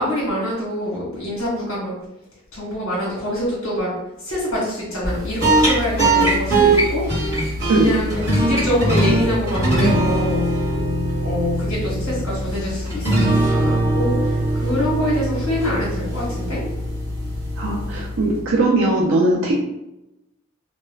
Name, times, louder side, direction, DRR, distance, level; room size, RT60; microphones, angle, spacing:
voice 1, 0.0-1.9 2.5-3.9 4.2-7.0 7.3-10.4 11.2-16.6, equal, 70° left, -6 dB, 1.0 m, -25 dB
sound 1, 5.0-18.6, right 1 dB, 15° right, 1.2 m, -21 dB
voice 2, 17.6-19.5, right 2 dB, 65° right, -3 dB, 0.4 m, -19 dB
2.3 x 2.1 x 3.1 m, 0.89 s
head